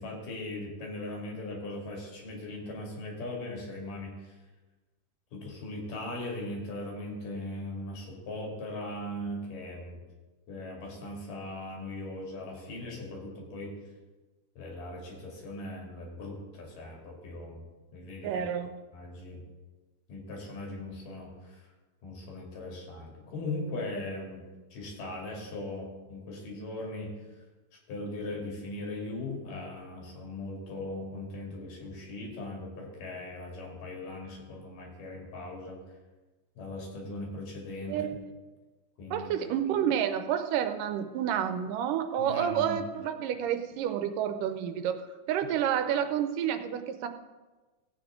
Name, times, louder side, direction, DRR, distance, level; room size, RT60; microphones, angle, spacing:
voice 1, 0.0-4.1 5.3-10.0 10.5-13.8 14.6-17.6 17.9-18.3 18.9-19.4 20.1-21.6 22.0-24.4 24.7-27.1 27.9-35.8 36.6-38.1 39.0-39.3 42.2-42.8, left 2 dB, 75° left, -1 dB, 4.1 m, -39 dB
voice 2, 18.2-18.7 37.9-38.3 39.1-47.1, right 9 dB, 85° right, 8 dB, 2.3 m, -29 dB
16.5 x 8.7 x 3.7 m, 1.2 s
omnidirectional pair, 3.9 m